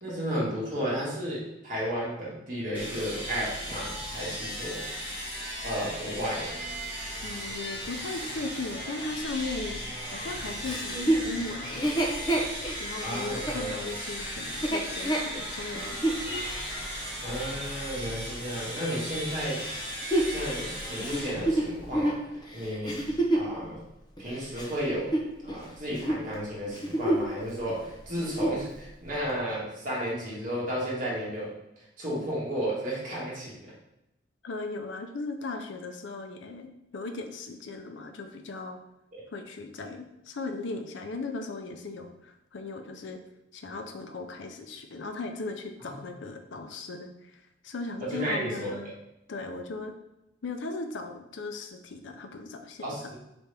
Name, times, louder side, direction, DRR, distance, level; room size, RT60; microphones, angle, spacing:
voice 1, 0.0-4.9 5.6-6.6 13.0-13.8 17.2-19.6 20.1-22.2 22.5-23.0 23.3-23.8 24.2-25.1 25.4-31.5 32.0-33.7 45.8-45.9 48.1-48.9 52.8-53.2, equal, 45° right, -6 dB, 1.6 m, -33 dB
sound 1, 2.7-22.2, equal, 10° right, 1.5 m, -37 dB
voice 2, 7.2-12.3 12.8-16.0 34.4-38.8 39.3-43.2 43.5-47.3 47.6-48.9 49.3-49.9 50.4-53.0, left 3 dB, 75° left, 5 dB, 0.5 m, -37 dB
Chuckle chortle, 10.6-16.2 16.8-16.9 19.6-23.5 24.2-25.6 25.9-26.2 26.7-27.4 27.7-27.8 28.2-28.7 29.3-29.4, right 1 dB, 20° left, 0.6 m, -29 dB
4.2 x 3.4 x 3.4 m, 0.87 s
head